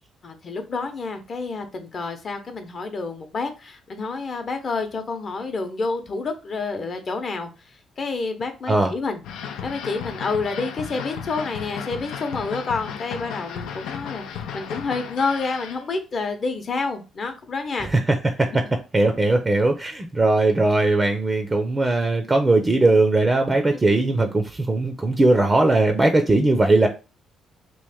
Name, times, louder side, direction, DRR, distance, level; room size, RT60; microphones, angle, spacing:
voice 1, 0.2-7.5 8.0-9.2 9.6-17.9, left 4 dB, 45° left, 6 dB, 0.8 m, -28 dB
sound 1, 9.2-15.8, left 7 dB, 85° left, 0.5 m, -34 dB
voice 2, 17.8-18.6 18.9-26.9, right 2 dB, 25° right, 5 dB, 0.5 m, -19 dB
3.1 x 2.5 x 3.5 m, 0.30 s
cardioid pair, 90°, 0 cm